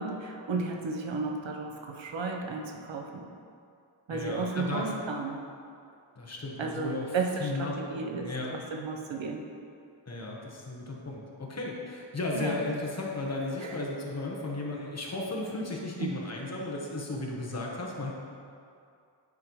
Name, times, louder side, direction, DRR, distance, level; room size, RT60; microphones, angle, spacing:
voice 1, 0.0-3.3 4.1-5.4 6.6-9.4 12.3-12.6 13.6-13.8 16.0-16.1, right 4 dB, 85° right, 2 dB, 0.9 m, -33 dB
voice 2, 4.1-4.8 6.2-7.8 8.2-8.5 10.1-18.1, left 2 dB, 35° left, -2 dB, 1.1 m, -35 dB
9.5 x 5.2 x 3.1 m, 2.4 s
wide cardioid pair, 125°, 44 cm